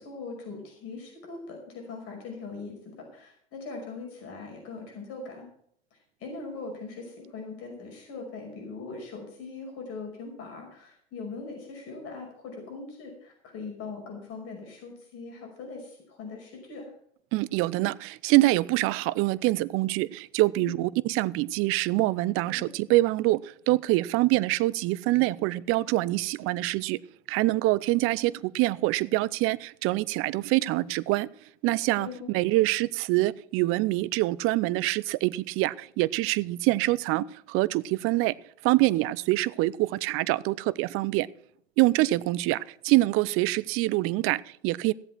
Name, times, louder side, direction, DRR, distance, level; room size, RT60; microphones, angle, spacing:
voice 1, 0.0-5.5 5.9-16.9 20.6-20.9 22.4-22.7 31.9-32.3, left 4 dB, 45° left, 5.6 m, -41 dB
voice 2, 17.3-27.0 27.3-31.3 31.6-38.3 38.6-41.3 41.8-44.9, right 19 dB, 40° right, 0.6 m, -25 dB
16.0 x 7.9 x 6.0 m
hypercardioid pair, 95°, 33 cm